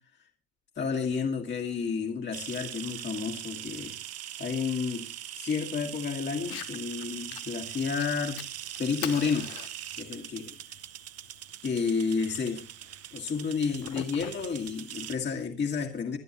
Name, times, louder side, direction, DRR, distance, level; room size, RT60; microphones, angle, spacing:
voice 1, 0.8-4.0 4.4-5.1 5.4-8.4 8.8-9.6 10.0-10.4 11.6-12.7 13.1-16.2, left 5 dB, 30° left, 1.8 m, -31 dB
sound 1, 2.3-15.2, right 12 dB, 40° right, 0.8 m, -41 dB
Fire, 6.4-15.4, left 14 dB, 70° left, 1.1 m, -46 dB
22.0 x 11.0 x 3.0 m
supercardioid pair, 100°, 38 cm